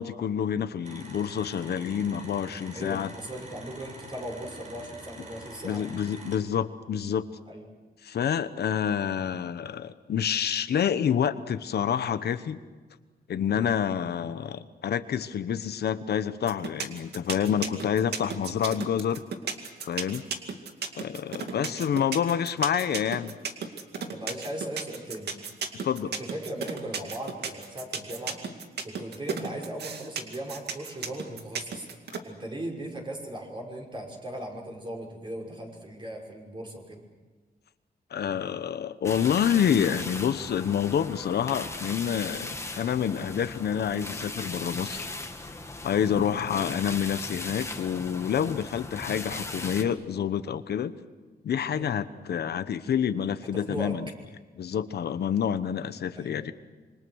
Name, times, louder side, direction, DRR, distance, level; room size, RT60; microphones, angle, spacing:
voice 1, 0.0-3.1 5.6-7.3 8.0-12.6 13.3-19.2 19.9-20.3 21.0-23.3 25.7-26.1 38.1-45.1 45.8-50.9 51.4-54.1 54.6-56.5, left 8 dB, 80° left, 12 dB, 1.1 m, -28 dB
sound 1, 0.8-6.4, right 1 dB, 45° right, 6.7 m, -45 dB
voice 2, 2.7-5.8 7.5-7.6 13.5-13.7 17.5-17.8 21.5-21.7 24.1-25.4 26.0-28.4 28.8-31.9 32.2-37.0 46.2-46.4 51.7-51.9 53.5-53.9 56.1-56.5, right 1 dB, 30° right, 1 dB, 6.0 m, -38 dB
sound 2, 16.5-32.2, right 6 dB, 90° right, 2.3 m, -33 dB
sound 3, 39.0-49.8, left 2 dB, 15° left, 1.9 m, -38 dB
27.0 x 25.0 x 6.4 m, 1.3 s
wide cardioid pair, 120°, 17 cm